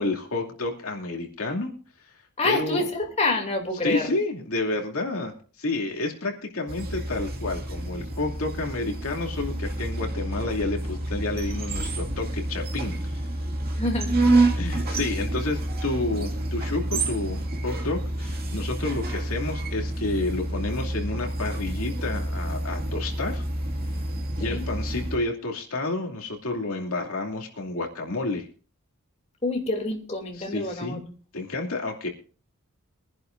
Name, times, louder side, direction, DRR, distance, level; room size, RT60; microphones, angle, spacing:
voice 1, 0.0-1.7 2.0-2.1 2.4-2.9 3.8-13.3 14.6-23.5 24.3-28.5 30.3-31.0 31.3-32.1, left 2 dB, 65° left, 1 dB, 2.7 m, -30 dB
voice 2, 2.4-4.1 13.7-14.1 24.4-24.6 29.4-31.1, left 2 dB, 30° left, 1 dB, 2.7 m, -27 dB
sound 1, 6.7-25.2, right 2 dB, 45° right, 2.2 m, -28 dB
23.5 x 11.0 x 2.6 m, 0.39 s
head